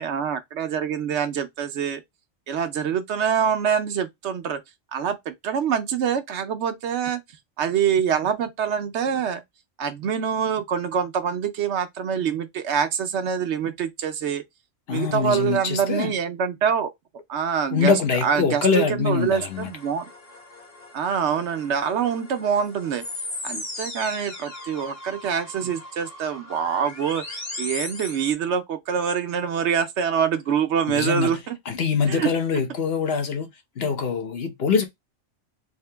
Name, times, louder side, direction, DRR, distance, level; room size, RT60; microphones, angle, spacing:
voice 1, 0.0-2.0 2.5-4.6 4.9-7.2 7.6-9.4 9.8-14.4 14.9-16.9 17.3-17.9 18.2-20.1 20.9-23.0 23.4-31.5 32.1-32.3, right 7 dB, 75° right, 1.0 m, -25 dB
voice 2, 14.9-16.1 17.7-19.7 30.9-31.3 31.7-33.5 33.8-34.9, left 5 dB, 60° left, 1.1 m, -23 dB
sound 1, 19.2-28.3, left 2 dB, 30° left, 1.0 m, -38 dB
3.6 x 2.8 x 3.3 m
omnidirectional pair, 1.2 m